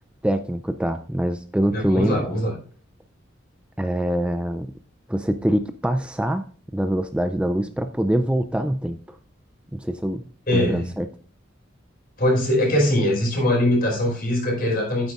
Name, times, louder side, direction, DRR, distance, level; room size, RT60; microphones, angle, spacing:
voice 1, 0.2-2.3 3.8-4.7 5.1-6.4 6.7-9.2 9.7-10.2 10.5-11.1, right 1 dB, 5° right, 8 dB, 0.3 m, -24 dB
voice 2, 1.7-2.5 10.5-10.8 12.2-15.1, left 1 dB, 50° left, -1 dB, 4.9 m, -21 dB
11.5 x 9.2 x 2.4 m, 0.42 s
head